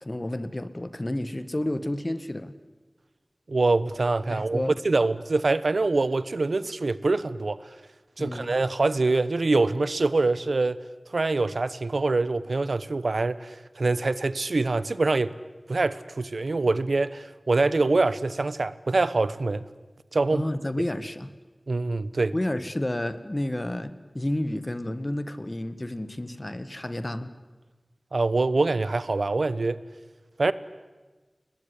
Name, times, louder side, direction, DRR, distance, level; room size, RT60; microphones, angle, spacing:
voice 1, 0.0-2.5 4.3-4.7 8.2-8.5 20.3-21.3 22.3-27.3, left 1 dB, 30° left, 1.7 m, -30 dB
voice 2, 3.5-7.6 8.2-10.8 11.1-15.3 15.7-19.6 20.1-20.4 21.7-22.3 28.1-29.8 30.4-30.5, right 3 dB, 90° right, 1.0 m, -24 dB
29.0 x 20.5 x 9.9 m
wide cardioid pair, 60°, 0 cm